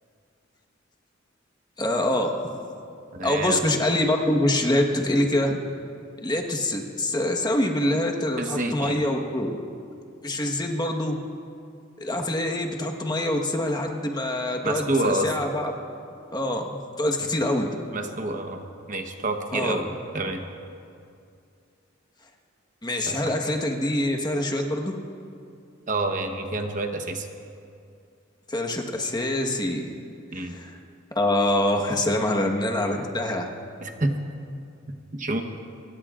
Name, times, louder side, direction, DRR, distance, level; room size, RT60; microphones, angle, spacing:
voice 1, 1.8-2.3 3.2-5.6 6.2-9.6 10.2-11.2 12.0-15.7 16.3-17.7 19.5-19.8 22.8-25.0 28.5-29.9 30.4-30.7 31.1-33.5, left 1 dB, 20° left, 1 dB, 1.3 m, -25 dB
voice 2, 3.1-3.6 8.4-9.0 14.6-15.3 17.9-18.6 18.9-19.8 20.1-20.4 23.1-23.3 25.9-27.3 30.3-30.6 33.8-34.1 35.1-35.4, right 2 dB, 40° right, 4 dB, 1.0 m, -28 dB
25.5 x 21.5 x 2.5 m, 2.4 s
head